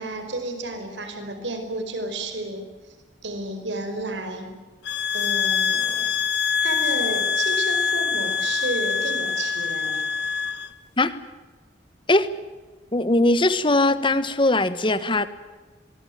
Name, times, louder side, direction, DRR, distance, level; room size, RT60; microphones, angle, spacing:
voice 1, 0.0-2.9 3.2-4.5 5.1-6.1 6.6-10.0, right 2 dB, 85° right, 7 dB, 5.1 m, -32 dB
sound 1, 4.9-10.7, left 6 dB, 70° left, 1.3 m, -24 dB
voice 2, 12.9-15.3, left 2 dB, 30° left, 13 dB, 1.4 m, -20 dB
24.0 x 21.0 x 9.4 m, 1.3 s
head